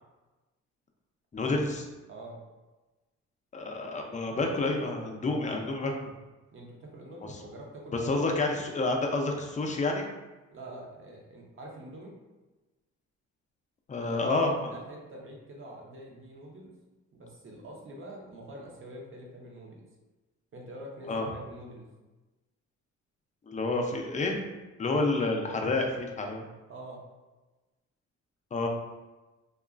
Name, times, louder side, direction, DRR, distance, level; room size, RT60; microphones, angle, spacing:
voice 1, 1.3-1.9 3.5-5.9 7.9-10.0 13.9-14.7 21.1-21.3 23.5-24.4 24.8-26.4 28.5-28.7, left 2 dB, 25° left, 2 dB, 0.4 m, -29 dB
voice 2, 2.1-2.4 6.5-8.6 10.5-12.1 13.9-16.7 17.1-19.9 20.5-21.9 26.7-27.0, right 1 dB, 45° right, -1 dB, 0.8 m, -45 dB
2.9 x 2.3 x 2.4 m, 1.2 s
cardioid pair, 90°, 30 cm